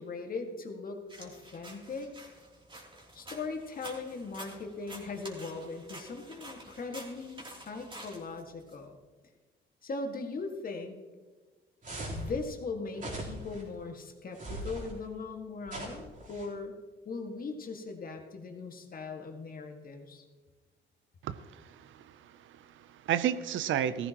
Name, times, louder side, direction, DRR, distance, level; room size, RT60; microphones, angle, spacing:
voice 1, 0.0-2.1 3.1-9.0 9.8-11.0 12.1-20.2, left 3 dB, 45° left, 3 dB, 1.9 m, -39 dB
sound 1, 1.1-8.8, right 1 dB, 25° right, 3.2 m, -49 dB
sound 2, 11.8-12.3 12.9-13.6 14.3-14.9 15.7-16.5, right 1 dB, 40° right, 3.8 m, -39 dB
voice 2, 21.2-24.1, right 10 dB, 75° right, 14 dB, 0.6 m, -33 dB
15.0 x 14.5 x 3.0 m, 1.3 s
cardioid pair, 90°, 20 cm